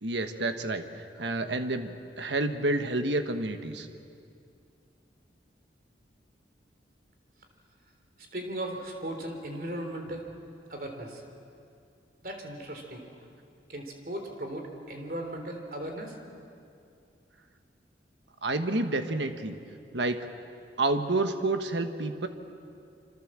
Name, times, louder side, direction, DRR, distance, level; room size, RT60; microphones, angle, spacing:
voice 1, 0.0-3.9 18.4-19.6 19.9-20.3 20.8-22.3, right 2 dB, 75° right, 7 dB, 1.5 m, -29 dB
voice 2, 8.3-10.2 10.7-11.2 12.2-13.0 13.7-16.2, right 1 dB, 50° right, 4 dB, 3.6 m, -37 dB
27.5 x 25.5 x 7.6 m, 2.5 s
head